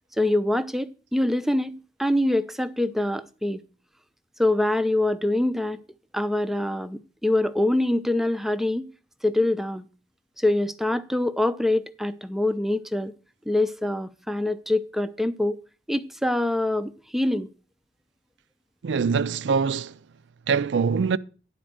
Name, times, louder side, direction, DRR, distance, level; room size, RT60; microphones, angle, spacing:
voice 1, 0.2-3.6 4.4-5.8 6.1-8.9 9.2-9.8 10.4-13.1 13.5-15.6 15.9-17.5, left 1 dB, ahead, 0.4 m, -24 dB
voice 2, 18.8-20.0 20.5-21.2, right 5 dB, 85° right, 0.4 m, -23 dB
10.0 x 4.4 x 7.5 m
head